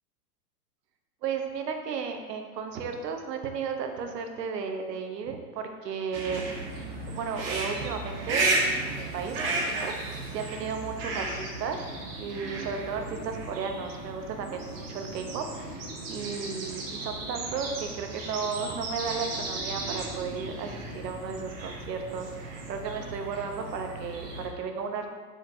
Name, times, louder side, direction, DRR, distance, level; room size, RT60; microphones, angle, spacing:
voice 1, 1.2-6.4 7.1-11.8 12.2-25.1, right 5 dB, 80° right, 5 dB, 0.8 m, -34 dB
sound 1, 6.1-24.5, right 2 dB, 40° right, 0.7 m, -34 dB
4.6 x 4.5 x 2.5 m, 1.5 s
supercardioid pair, 160°, 48 cm